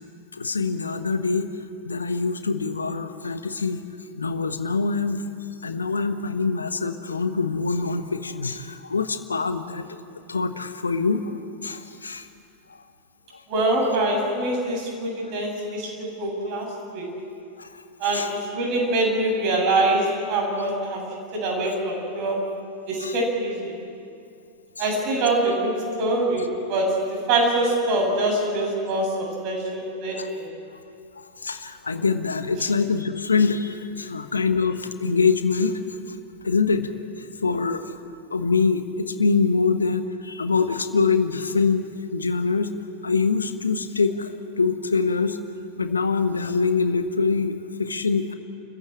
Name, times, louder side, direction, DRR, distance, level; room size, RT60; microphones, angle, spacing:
voice 1, 0.4-1.5 1.8-3.8 4.2-5.2 5.6-9.8 10.3-11.3 11.6-12.3 17.6-17.7 18.1-18.3 23.0-23.1 30.2-30.3 31.2-35.8 36.4-36.9 37.4-37.8 38.3-41.8 42.1-42.7 43.0-45.4 45.8-48.3, left 4 dB, 75° left, 10 dB, 1.1 m, -24 dB
voice 2, 13.5-17.1 18.0-21.0 21.3-22.5 22.9-23.8 24.8-30.5, right 2 dB, 45° right, -1 dB, 7.5 m, -24 dB
29.5 x 15.0 x 8.9 m, 2.4 s
figure-of-eight pair, 90°, 0 cm